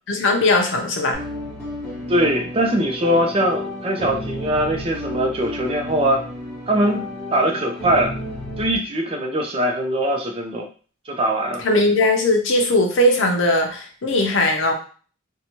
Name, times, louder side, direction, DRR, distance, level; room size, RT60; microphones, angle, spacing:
voice 1, 0.1-1.2 11.6-14.7, left 1 dB, 80° left, 3 dB, 0.6 m, -19 dB
sound 1, 1.1-8.8, left 1 dB, 15° left, 1.1 m, -32 dB
voice 2, 2.1-6.2 6.7-7.0 7.3-8.1 8.6-10.7 11.1-11.6, right 1 dB, 30° right, 2 dB, 0.5 m, -21 dB
2.7 x 2.2 x 2.9 m, 0.40 s
head